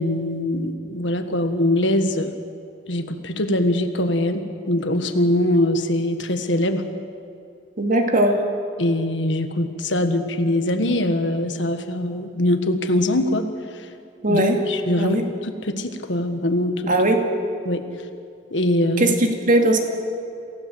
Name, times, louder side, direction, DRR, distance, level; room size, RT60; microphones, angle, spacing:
voice 1, 0.0-2.4 2.9-6.8 8.8-13.5 14.3-15.2 15.4-16.9 17.7-17.8 18.5-19.2, left 1 dB, 75° left, 7 dB, 1.6 m, -22 dB
voice 2, 7.8-8.4 14.2-14.6 15.0-15.3 16.9-17.3 19.0-19.8, right 1 dB, 45° right, 3 dB, 2.3 m, -19 dB
27.5 x 16.0 x 7.9 m, 2.5 s
head